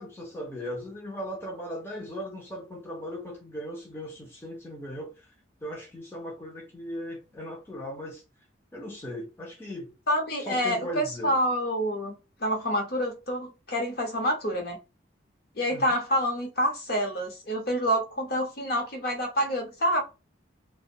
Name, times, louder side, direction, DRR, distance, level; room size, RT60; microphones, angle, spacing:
voice 1, 0.0-5.3 5.6-8.2 8.7-9.9 10.4-11.3 15.7-15.9, equal, 10° left, 0.4 m, -38 dB
voice 2, 10.1-12.1 12.4-14.8 15.6-20.0, equal, 50° left, 0.8 m, -27 dB
2.5 x 2.1 x 2.7 m
head